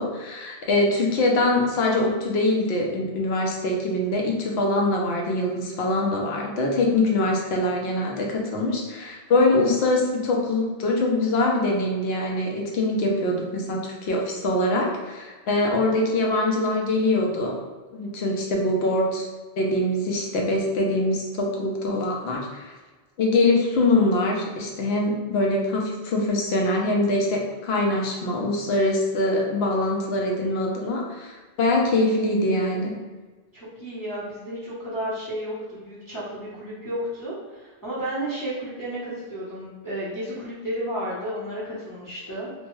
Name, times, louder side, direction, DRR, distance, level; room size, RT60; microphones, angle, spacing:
voice 1, 0.0-17.5 17.9-19.3 19.6-22.7 23.2-32.9, left 2 dB, 70° left, 0 dB, 0.8 m, -23 dB
voice 2, 33.5-42.5, right 1 dB, 20° left, -10 dB, 0.7 m, -32 dB
2.9 x 2.1 x 3.0 m, 1.3 s
omnidirectional pair, 1.1 m